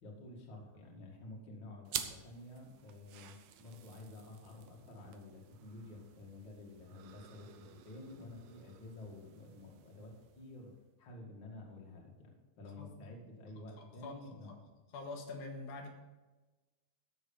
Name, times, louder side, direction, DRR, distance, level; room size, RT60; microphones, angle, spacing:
voice 1, 0.0-10.7 11.0-12.3 12.6-14.6, left 2 dB, 35° left, -1 dB, 2.3 m, -51 dB
sound 1, 1.8-10.8, right 10 dB, 80° right, 1.6 m, -49 dB
voice 2, 13.8-14.2 14.9-15.9, left 3 dB, 80° left, 2 dB, 3.1 m, -45 dB
14.0 x 6.5 x 5.4 m, 1.2 s
omnidirectional pair, 4.2 m